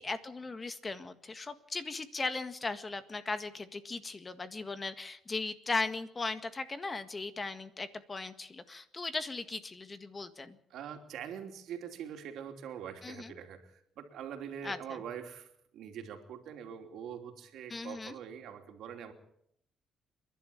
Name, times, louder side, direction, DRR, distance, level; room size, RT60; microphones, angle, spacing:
voice 1, 0.0-10.6 13.0-13.3 14.6-15.0 17.7-18.2, left 3 dB, 30° left, 10 dB, 1.8 m, -38 dB
voice 2, 10.7-15.5 15.7-19.1, right 8 dB, 80° right, 5 dB, 3.1 m, -44 dB
28.0 x 11.5 x 8.7 m, 0.73 s
cardioid pair, 90°, 0 cm